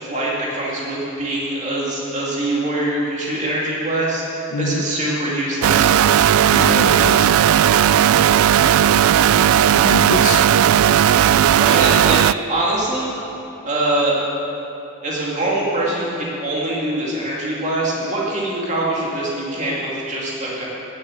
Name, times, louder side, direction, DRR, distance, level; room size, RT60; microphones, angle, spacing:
voice 1, 0.0-4.2 4.6-5.9 11.6-13.1 13.6-14.2 15.0-20.7, right 1 dB, 35° right, -5 dB, 2.3 m, -23 dB
voice 2, 4.5-4.8 6.5-7.3 9.3-10.5, left 2 dB, 80° left, 8 dB, 0.8 m, -25 dB
sound 1, 5.6-12.3, right 10 dB, 90° right, 0.3 m, -15 dB
11.5 x 10.5 x 7.7 m, 3.0 s
head